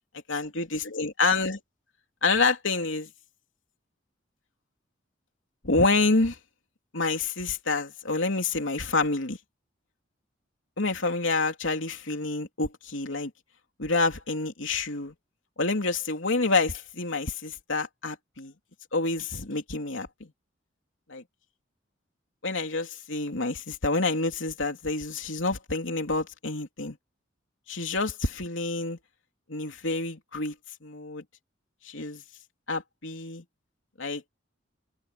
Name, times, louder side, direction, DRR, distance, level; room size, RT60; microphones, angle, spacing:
voice 1, 0.3-1.6 2.2-3.1 5.6-6.4 6.9-9.4 10.8-13.3 13.8-15.1 15.6-18.5 18.9-20.3 21.1-21.2 22.4-27.0 27.7-29.0 29.5-30.5 30.8-31.2 31.8-32.2 32.7-33.4 34.0-34.2, left 3 dB, 85° left, 3.1 m, -28 dB
open air
head